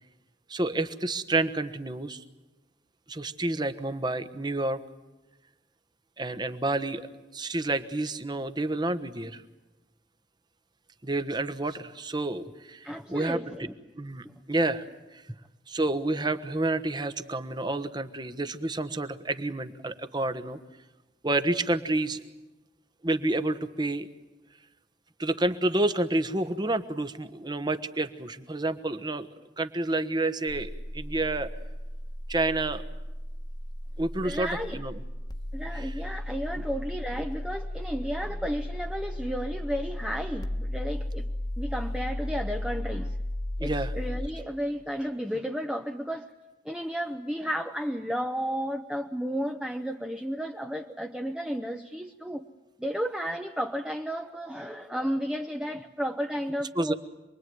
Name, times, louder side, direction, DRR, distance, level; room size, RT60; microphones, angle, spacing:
voice 1, 0.5-2.2 3.1-4.8 6.2-7.0 7.3-9.4 11.0-13.4 14.0-14.9 15.1-15.2 15.7-20.6 21.2-22.2 23.0-24.1 25.2-29.3 29.6-31.5 32.3-32.8 34.0-34.9 35.7-35.9 43.6-43.9 56.7-56.9, right 2 dB, 25° right, 10 dB, 1.3 m, -29 dB
voice 2, 12.8-13.7 34.2-34.8 35.5-41.3 41.6-43.2 43.6-46.3 46.6-52.4 52.8-56.9, equal, 5° right, 3 dB, 0.9 m, -33 dB
sound 1, 30.5-44.3, left 1 dB, 25° left, 1.5 m, -35 dB
27.5 x 22.0 x 9.4 m, 1.1 s
head